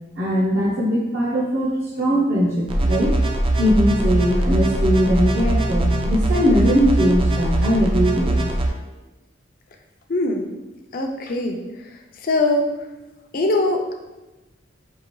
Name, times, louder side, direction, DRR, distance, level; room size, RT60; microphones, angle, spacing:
voice 1, 0.2-3.1 3.6-8.4, equal, 55° right, -7 dB, 0.8 m, -20 dB
sound 1, 2.7-8.7, right 1 dB, 30° right, 0.4 m, -21 dB
voice 2, 10.1-10.5 10.9-11.9 12.2-12.7 13.3-13.9, left 2 dB, 50° left, 3 dB, 0.5 m, -22 dB
4.7 x 2.9 x 3.0 m, 1.1 s
head